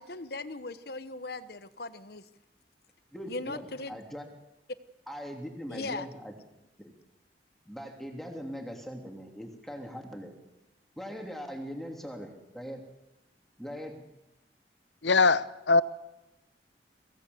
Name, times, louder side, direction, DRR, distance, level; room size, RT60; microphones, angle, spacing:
voice 1, 0.0-2.2 3.3-4.0 5.7-6.1, left 2 dB, 60° left, 13 dB, 1.1 m, -38 dB
voice 2, 3.1-4.2 5.1-6.3 7.7-10.3 11.0-12.8 13.6-14.0, equal, ahead, 2 dB, 2.9 m, -41 dB
voice 3, 15.0-15.8, left 4 dB, 80° left, 15 dB, 0.8 m, -22 dB
23.0 x 17.0 x 8.0 m, 0.98 s
head